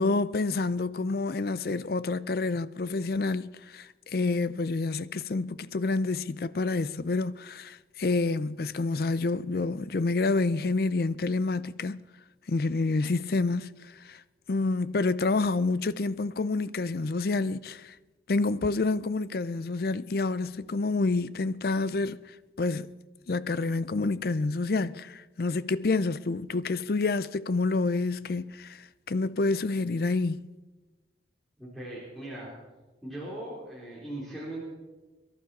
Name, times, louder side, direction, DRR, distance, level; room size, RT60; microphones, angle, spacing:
voice 1, 0.0-12.0 12.5-14.2 14.5-18.0 18.3-22.2 22.6-22.9 23.3-30.5, left 3 dB, 55° left, 0.5 m, -28 dB
voice 2, 31.6-32.5 33.0-34.6, right 1 dB, ahead, 3.7 m, -39 dB
23.0 x 11.5 x 4.2 m
head